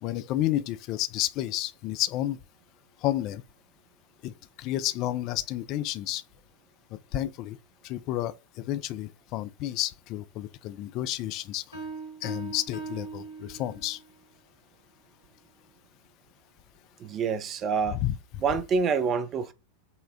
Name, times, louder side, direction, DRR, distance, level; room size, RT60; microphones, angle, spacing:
voice 1, 0.0-2.4 3.0-3.4 4.2-4.3 4.6-6.2 6.9-7.6 7.8-11.6 12.2-14.0 18.0-18.2, left 14 dB, 40° left, 0.3 m, -31 dB
sound 1, 11.7-14.1, right 4 dB, 85° left, 1.8 m, -40 dB
voice 2, 17.0-18.0 18.4-19.5, right 5 dB, 30° right, 0.5 m, -27 dB
5.5 x 2.1 x 2.6 m
figure-of-eight pair, 90°, 0 cm